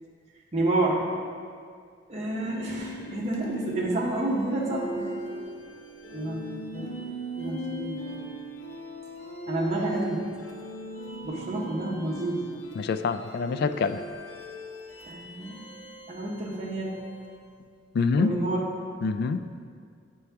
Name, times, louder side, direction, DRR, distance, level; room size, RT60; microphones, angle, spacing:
voice 1, 0.5-1.0 2.1-5.1 6.1-7.1 7.4-8.1 9.5-10.2 11.2-12.4 15.0-15.6 16.1-16.9 18.2-18.6, right 2 dB, 35° right, -4 dB, 0.9 m, -29 dB
sound 1, 2.3-17.4, right 1 dB, 80° left, 0.9 m, -39 dB
voice 2, 12.8-14.0 17.9-18.3 19.0-19.4, left 4 dB, 60° left, 11 dB, 0.3 m, -26 dB
8.7 x 4.6 x 3.4 m, 2.2 s
head